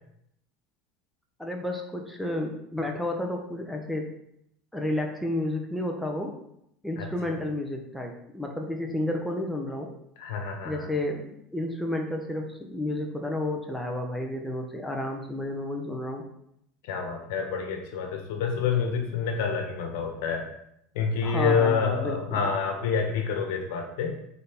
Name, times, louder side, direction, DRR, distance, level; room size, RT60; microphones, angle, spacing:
voice 1, 1.4-4.1 4.7-6.4 6.8-9.9 10.6-16.2 21.2-22.5, left 1 dB, 5° left, 1 dB, 1.1 m, -31 dB
voice 2, 7.0-7.4 10.2-10.9 16.8-20.5 20.9-24.1, left 5 dB, 75° left, 4 dB, 1.2 m, -28 dB
6.5 x 4.2 x 3.7 m, 0.76 s
supercardioid pair, 100°, 0 cm